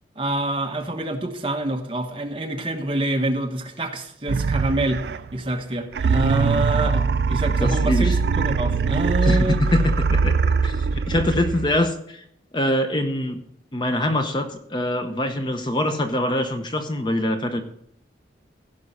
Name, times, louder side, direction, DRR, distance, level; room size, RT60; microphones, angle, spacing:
voice 1, 0.2-5.0 5.3-9.6, right 1 dB, 30° right, 3 dB, 1.2 m, -26 dB
sound 1, 4.3-5.4 5.9-11.9, right 5 dB, 60° right, 0.3 m, -22 dB
voice 2, 7.6-8.2 9.2-10.4 10.6-12.2 12.5-13.4 13.7-17.6, left 1 dB, 25° left, 6 dB, 0.7 m, -24 dB
16.0 x 5.5 x 5.4 m, 0.71 s
head